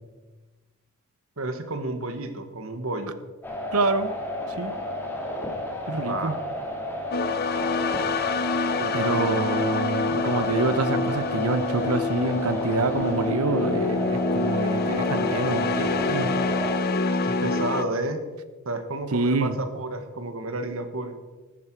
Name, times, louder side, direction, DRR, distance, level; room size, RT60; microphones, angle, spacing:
voice 1, 1.4-3.2 5.9-6.4 8.8-9.6 17.1-18.2 18.6-21.1, right 2 dB, 65° right, 8 dB, 1.3 m, -31 dB
sound 1, 3.4-16.8, left 1 dB, 10° left, 2.3 m, -32 dB
voice 2, 3.7-4.1 4.6-4.7 5.9-6.4 8.9-16.3 19.1-19.6, right 3 dB, 80° right, 12 dB, 0.8 m, -26 dB
sound 2, 7.1-17.8, left 3 dB, 45° left, 0.7 m, -26 dB
14.0 x 11.5 x 4.6 m, 1.3 s
head